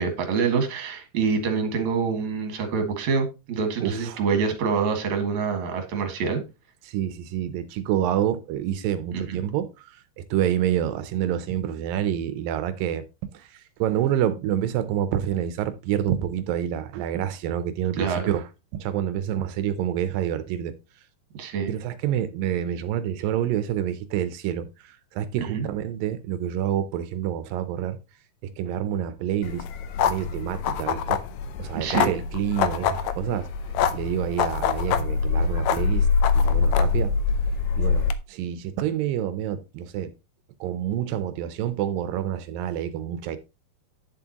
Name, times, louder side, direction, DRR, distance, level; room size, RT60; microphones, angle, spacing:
voice 1, 0.0-6.4 9.1-9.4 18.0-18.3 21.3-21.7 25.4-25.7 31.7-32.1, right 5 dB, 60° right, 2.9 m, -26 dB
voice 2, 3.8-4.2 6.8-13.0 13.3-18.5 18.7-20.8 21.7-28.0 28.4-29.7 30.1-31.2 31.6-33.5 33.9-36.1 36.3-37.1 37.8-40.1 40.6-43.4, right 10 dB, 80° right, 2.4 m, -28 dB
sound 1, 29.4-38.1, left 6 dB, 85° left, 1.5 m, -24 dB
10.0 x 7.3 x 2.9 m
omnidirectional pair, 4.0 m